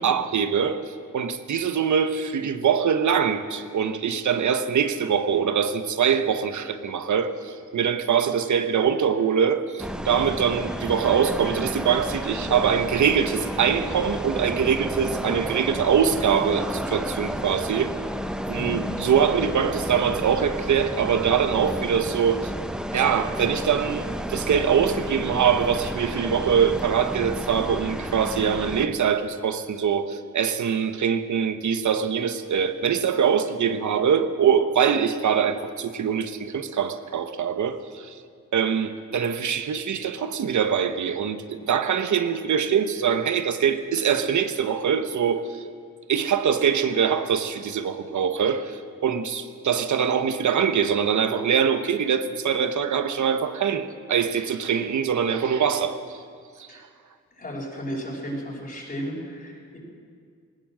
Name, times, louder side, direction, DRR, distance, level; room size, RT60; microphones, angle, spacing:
voice 1, 0.0-17.9 18.5-22.5 22.9-38.2 38.5-45.6 46.1-56.2 56.6-56.8, right 7 dB, 80° right, 9 dB, 1.3 m, -23 dB
sound 1, 9.8-28.9, equal, 5° right, 1.2 m, -31 dB
voice 2, 18.5-18.9 56.7-56.9 57.3-59.8, equal, 30° left, -4 dB, 5.9 m, -34 dB
20.0 x 18.5 x 7.7 m, 2.1 s
wide cardioid pair, 100°, 29 cm